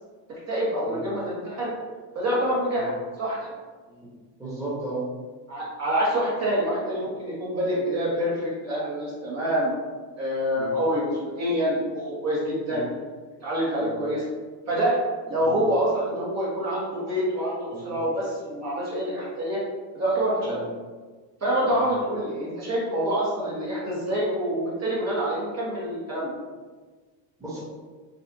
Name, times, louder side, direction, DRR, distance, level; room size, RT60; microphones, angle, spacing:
voice 1, 0.5-1.7 2.1-2.9 3.2-3.5 5.5-9.7 10.2-12.8 13.4-14.2 14.7-15.0 15.3-19.6 19.9-20.6 21.4-26.3, equal, 35° right, -6 dB, 1.5 m, -26 dB
voice 2, 4.4-5.0 10.6-10.7 12.7-12.9 13.8-13.9 15.4-15.5 17.7-18.0 20.4-20.6 21.6-21.8 27.4-27.6, right 2 dB, 5° right, -9 dB, 1.4 m, -36 dB
5.3 x 2.5 x 2.8 m, 1.4 s
supercardioid pair, 120°, 48 cm